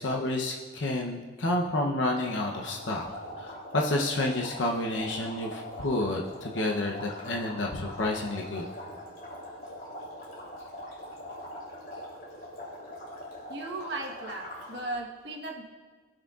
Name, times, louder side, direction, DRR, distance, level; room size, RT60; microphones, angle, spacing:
voice 1, 0.0-3.1 3.4-8.7, left 1 dB, 85° left, -1 dB, 0.8 m, -30 dB
sound 1, 2.1-14.9, left 1 dB, 50° left, 3.1 m, -42 dB
voice 2, 13.5-15.6, right 2 dB, 60° right, 0 dB, 1.3 m, -36 dB
18.0 x 6.4 x 2.4 m, 1.5 s
head